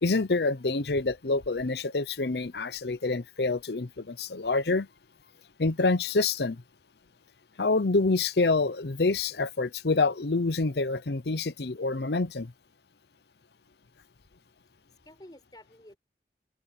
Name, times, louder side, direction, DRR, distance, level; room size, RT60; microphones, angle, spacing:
voice 1, 0.0-4.9 5.6-6.6 7.6-12.5, left 3 dB, 65° left, 0.8 m, -27 dB
voice 2, 14.7-16.0, left 1 dB, 25° left, 4.9 m, -52 dB
open air
head